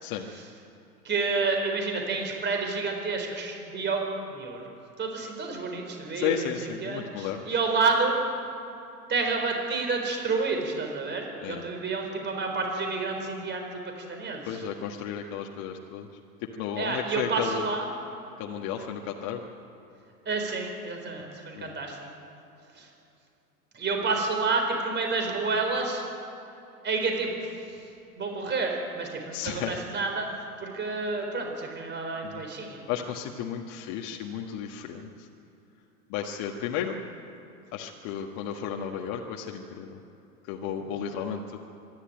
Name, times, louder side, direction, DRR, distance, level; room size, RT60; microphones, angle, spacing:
voice 1, 1.0-4.6 5.0-6.5 6.8-8.1 9.1-14.6 16.8-17.9 20.3-22.1 22.8-22.9 23.7-26.0 26.8-27.5 28.2-30.3 30.6-32.8, right 4 dB, 20° right, 3 dB, 4.3 m, -29 dB
voice 2, 6.1-7.4 11.4-11.6 14.4-16.1 16.6-17.7 18.4-19.4 21.6-21.7 29.3-29.8 32.3-32.4 32.9-35.3 36.1-37.0 37.7-40.0 40.5-41.6, left 8 dB, 40° left, 1 dB, 1.7 m, -33 dB
25.0 x 11.5 x 9.1 m, 2.8 s
figure-of-eight pair, 100°, 47 cm